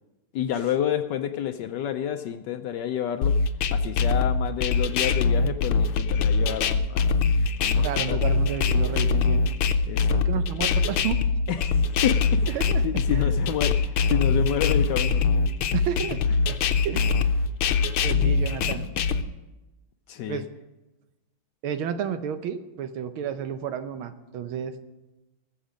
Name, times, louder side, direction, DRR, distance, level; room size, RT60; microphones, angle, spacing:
voice 1, 0.3-3.3 3.7-7.1 7.6-8.2 9.9-10.2 11.5-12.2 12.8-15.2 20.1-20.4, left 10 dB, 75° left, 8 dB, 1.0 m, -29 dB
sound 1, 3.2-19.2, left 5 dB, 90° left, 1.6 m, -23 dB
voice 2, 7.8-9.4 10.1-11.2 12.5-12.8 13.1-13.4 15.7-16.2 16.5-16.6 16.9-17.1 18.0-18.8 20.3-20.5 21.6-24.8, right 8 dB, 80° right, 10 dB, 1.7 m, -31 dB
19.5 x 7.3 x 5.1 m, 1.0 s
omnidirectional pair, 2.2 m